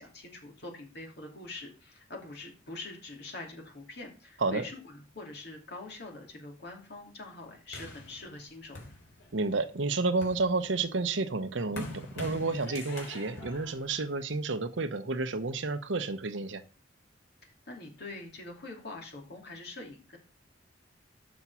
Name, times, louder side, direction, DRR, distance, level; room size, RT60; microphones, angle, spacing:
voice 1, 0.0-8.9 17.4-20.2, left 2 dB, 60° left, 1 dB, 2.9 m, -44 dB
sound 1, 7.7-9.5 10.0-14.6, left 2 dB, 90° left, 3.9 m, -45 dB
voice 2, 9.3-16.6, right 3 dB, 85° right, 11 dB, 0.9 m, -30 dB
7.2 x 6.1 x 5.6 m, 0.35 s
head